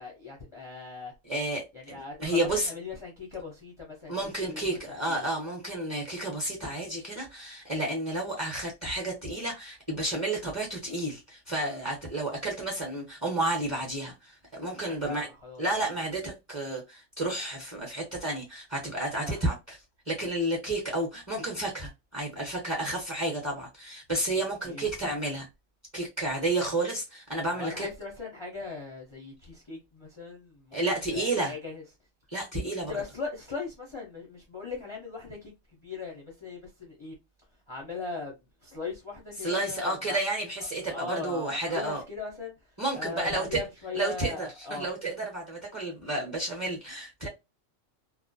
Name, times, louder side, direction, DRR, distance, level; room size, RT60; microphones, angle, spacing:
voice 1, 0.0-1.1 1.7-4.6 5.1-5.2 14.9-16.0 19.2-19.4 24.6-24.9 27.5-30.8 31.1-31.8 32.9-35.5 35.8-37.2 37.7-38.3 38.6-40.2 40.9-42.5 42.9-44.9, left 4 dB, 35° left, 0.4 m, -39 dB
voice 2, 1.3-2.7 4.1-15.3 15.6-19.8 20.1-25.5 25.9-27.9 30.7-31.5 32.3-32.9 39.4-42.0 42.8-43.6 43.9-47.3, right 2 dB, 25° right, 0.7 m, -31 dB
2.4 x 2.1 x 2.5 m
omnidirectional pair, 1.4 m